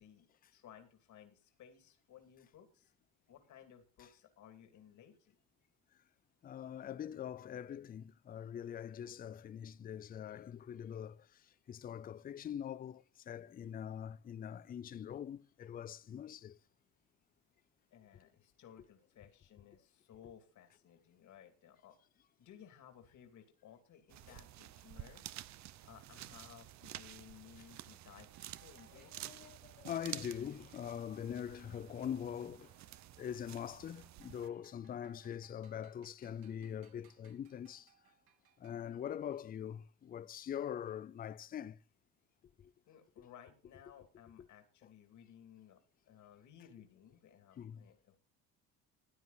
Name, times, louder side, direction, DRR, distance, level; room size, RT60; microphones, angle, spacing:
voice 1, 0.0-2.9 3.3-5.3 17.9-22.0 22.4-25.2 25.8-29.1 42.9-48.2, left 9 dB, 55° left, 2.5 m, -59 dB
voice 2, 6.4-16.6 29.1-32.7 33.2-37.9 38.6-41.8 42.6-42.7 43.2-43.3 47.6-47.8, left 9 dB, 25° left, 0.5 m, -43 dB
sound 1, 24.1-34.5, right 14 dB, 50° right, 0.7 m, -51 dB
sound 2, 27.7-32.7 33.0-39.2, right 9 dB, 70° right, 3.1 m, -70 dB
14.5 x 9.5 x 4.0 m
cardioid pair, 110°, 36 cm